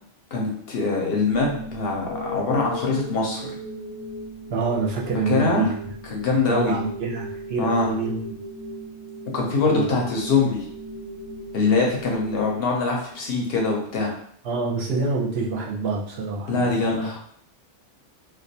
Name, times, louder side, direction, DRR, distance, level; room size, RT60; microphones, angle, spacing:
voice 1, 0.3-3.5 5.3-5.7 6.1-6.7 7.6-7.9 9.3-10.6 11.5-14.2 16.5-17.2, left 4 dB, 60° left, -1 dB, 0.7 m, -23 dB
sound 1, 1.3-13.4, equal, 90° left, 1.0 m, -37 dB
voice 2, 4.5-5.7 6.5-8.2 9.6-9.9 14.4-17.1, right 4 dB, 65° right, -2 dB, 0.7 m, -26 dB
2.2 x 2.2 x 2.6 m, 0.64 s
omnidirectional pair, 1.2 m